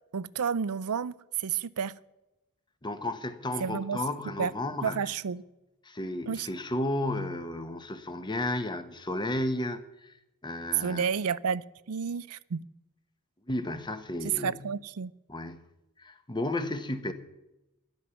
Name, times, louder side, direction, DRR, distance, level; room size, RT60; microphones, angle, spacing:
voice 1, 0.1-1.9 3.6-4.0 4.4-4.5 4.8-5.4 6.3-6.5 10.8-12.6 14.3-15.1, right 6 dB, 85° right, 0.5 m, -31 dB
voice 2, 2.8-5.0 5.8-10.1 10.4-11.0 13.5-14.6 15.3-15.6 16.0-17.1, left 1 dB, 20° left, 1.0 m, -33 dB
13.5 x 11.5 x 7.0 m
head